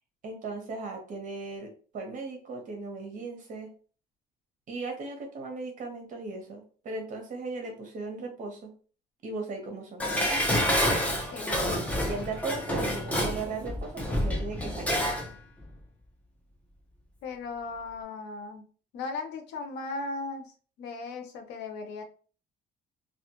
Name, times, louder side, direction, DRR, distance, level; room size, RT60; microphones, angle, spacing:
voice 1, 0.2-3.7 4.7-8.7 9.2-10.6 12.0-14.9, right 3 dB, 50° right, 3 dB, 1.0 m, -37 dB
Dishes pots and pans, 10.0-15.3 15.6-15.7, equal, 10° left, 0.7 m, -28 dB
voice 2, 11.3-11.7 17.2-18.7 18.9-20.5 20.8-22.0, left 3 dB, 85° left, 6 dB, 0.6 m, -37 dB
2.4 x 2.3 x 2.9 m, 0.40 s
cardioid pair, 110°, 17 cm